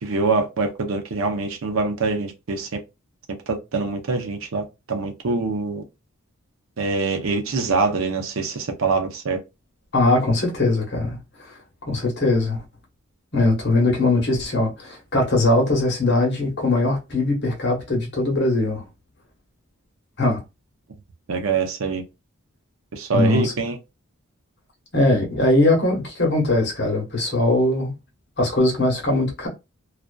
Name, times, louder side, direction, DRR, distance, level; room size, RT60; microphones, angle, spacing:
voice 1, 0.0-2.8 3.5-5.8 6.8-9.4 21.3-22.0 22.9-23.8, right 4 dB, 70° right, 0.6 m, -24 dB
voice 2, 9.9-11.6 11.9-12.6 13.3-18.8 20.2-20.4 23.1-23.5 24.9-27.9 28.4-29.5, left 2 dB, 50° left, 1.0 m, -20 dB
2.4 x 2.3 x 2.2 m
head